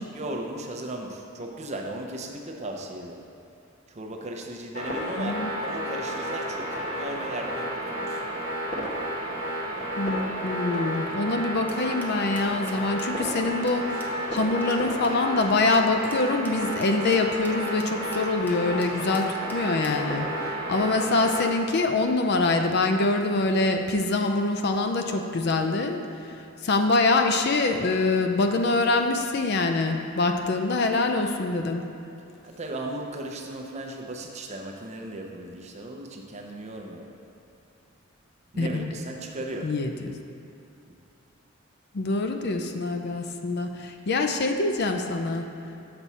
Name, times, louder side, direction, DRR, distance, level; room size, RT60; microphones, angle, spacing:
voice 1, 0.0-3.2 3.9-8.2 32.4-37.1 38.5-39.7 40.9-41.0, right 1 dB, 35° right, 1 dB, 0.6 m, -36 dB
sound 1, 4.7-21.5, equal, 35° left, 1.1 m, -32 dB
voice 2, 5.2-5.5 10.0-20.3 20.7-26.0 26.6-31.8 38.6-38.8 39.6-39.9 41.9-45.5, left 3 dB, 55° left, 5 dB, 0.5 m, -25 dB
sound 2, 11.7-20.1, equal, 10° left, 0.7 m, -47 dB
6.9 x 6.0 x 4.2 m, 2.6 s
head